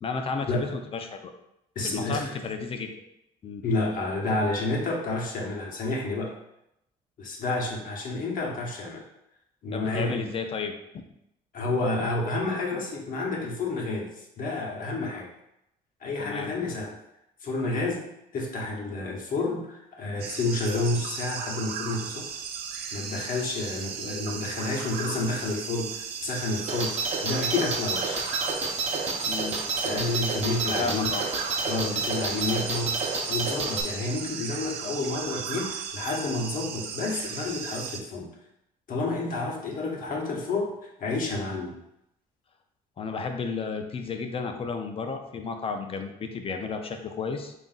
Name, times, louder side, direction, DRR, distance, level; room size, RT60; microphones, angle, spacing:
voice 1, 0.0-1.3 1.8-2.9 3.4-3.6 9.7-11.0 16.2-16.6 29.3-29.6 30.8-31.3 31.8-32.0 32.3-32.7 43.0-47.5, left 5 dB, 35° left, 5 dB, 0.5 m, -33 dB
voice 2, 1.7-2.3 3.6-6.3 7.2-9.0 9.6-10.3 11.5-14.1 14.4-15.3 16.0-17.0 17.4-18.0 18.3-22.3 22.9-28.2 29.8-31.1 31.7-33.0 33.3-38.3 38.9-41.7, left 2 dB, 60° left, -2 dB, 0.9 m, -30 dB
sound 1, 20.2-38.0, right 7 dB, 75° right, 0.5 m, -36 dB
sound 2, 26.7-33.8, right 4 dB, 40° right, 0.7 m, -29 dB
3.5 x 2.5 x 3.9 m, 0.83 s
cardioid pair, 95°, 16 cm